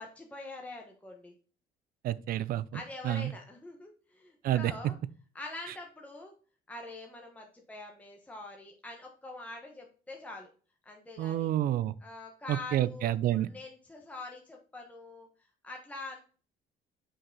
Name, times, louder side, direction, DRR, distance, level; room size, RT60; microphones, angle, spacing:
voice 1, 0.0-1.3 2.7-4.9 5.3-6.3 6.7-10.5 10.8-11.5 12.0-15.3 15.6-16.2, left 2 dB, 10° left, 1.3 m, -45 dB
voice 2, 2.0-3.3 4.4-4.9 11.2-11.9 12.5-13.5, right 12 dB, 60° right, 0.5 m, -29 dB
6.1 x 4.7 x 4.0 m
cardioid pair, 110°, 17 cm